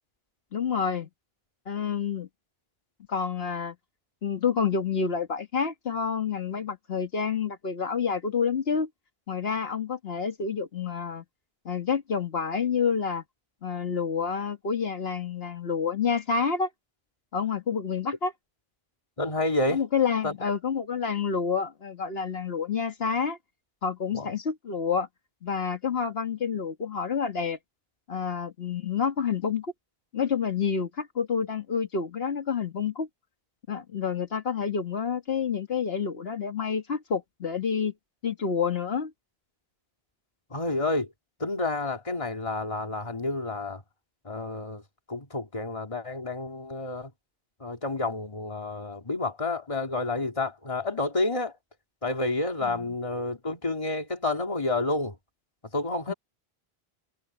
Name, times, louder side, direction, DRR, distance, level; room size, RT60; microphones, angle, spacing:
voice 1, 0.5-1.1 1.7-2.3 3.1-3.8 4.2-8.9 9.3-11.2 11.7-13.2 13.6-16.7 17.3-18.3 19.7-23.4 23.8-25.1 25.4-27.6 28.1-29.7 30.1-33.1 33.7-37.9 38.2-39.1 52.7-52.8 56.1-56.2, left 6 dB, 75° left, 1.8 m, -28 dB
voice 2, 19.2-19.8 20.2-20.3 24.1-24.3 40.5-41.1 41.4-43.8 44.2-44.8 45.1-47.1 47.6-51.5 52.0-55.2 55.7-56.1, left 2 dB, 30° left, 2.2 m, -29 dB
omnidirectional pair, 1.0 m